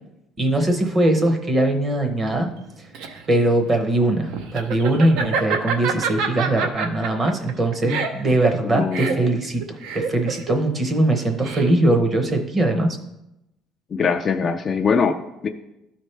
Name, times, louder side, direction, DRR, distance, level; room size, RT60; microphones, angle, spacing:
voice 1, 0.4-2.5 2.8-2.9 3.3-13.0, right 1 dB, 20° right, 5 dB, 0.7 m, -21 dB
Laughter, 2.6-12.0, right 5 dB, 80° right, 0.7 m, -27 dB
voice 2, 8.6-9.3 13.9-15.5, left 5 dB, 30° left, 6 dB, 0.3 m, -23 dB
13.0 x 4.3 x 3.2 m, 0.91 s
cardioid pair, 160°, 0 cm